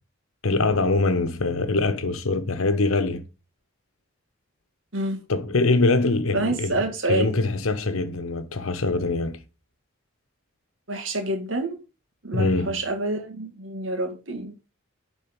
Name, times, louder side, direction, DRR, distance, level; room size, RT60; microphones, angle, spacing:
voice 1, 0.4-3.3 5.3-9.4 12.3-12.8, left 3 dB, 85° left, 1.1 m, -23 dB
voice 2, 6.3-7.3 10.9-11.8 12.2-14.5, right 2 dB, 65° right, 2.2 m, -27 dB
10.5 x 4.3 x 5.5 m
head